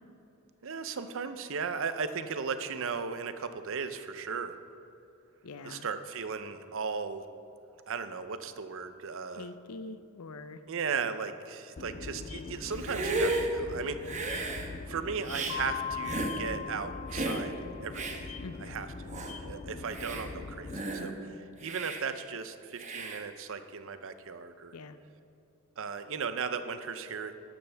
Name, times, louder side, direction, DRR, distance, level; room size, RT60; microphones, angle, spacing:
voice 1, 0.6-4.6 5.6-7.2 7.9-9.5 10.7-14.3 14.9-17.5 17.8-18.2 18.6-21.3 21.6-24.7 25.8-27.3, right 5 dB, 65° right, 10 dB, 0.7 m, -36 dB
voice 2, 5.4-5.9 9.3-10.6 18.4-18.8 24.7-25.0, left 3 dB, 85° left, 11 dB, 0.6 m, -44 dB
sound 1, 11.8-20.8, left 3 dB, 35° left, 0.4 m, -43 dB
Hiss, 12.7-13.5 14.0-14.7 15.3-15.6 16.1-16.4 17.1-17.4 17.9-18.2 18.8-18.9 19.1-19.3 19.8-20.3 20.7-21.1 21.6-22.0 22.8-23.2, right 2 dB, 35° right, 1.1 m, -33 dB
Mallet percussion, 15.5-18.1, left 8 dB, 60° left, 1.4 m, -39 dB
12.5 x 12.0 x 3.5 m, 2.9 s
head